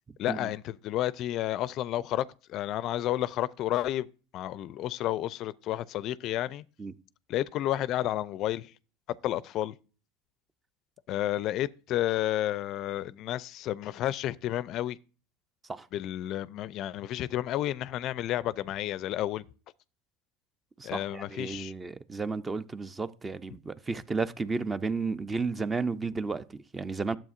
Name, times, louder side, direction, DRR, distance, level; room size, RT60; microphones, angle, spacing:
voice 1, 0.2-4.1 4.3-6.6 7.3-8.7 9.2-9.7 11.1-15.0 15.9-19.4 20.8-21.7, left 13 dB, 50° left, 0.4 m, -31 dB
voice 2, 20.8-27.2, right 4 dB, 20° right, 0.6 m, -33 dB
12.0 x 7.4 x 2.5 m
hypercardioid pair, 90°, 0 cm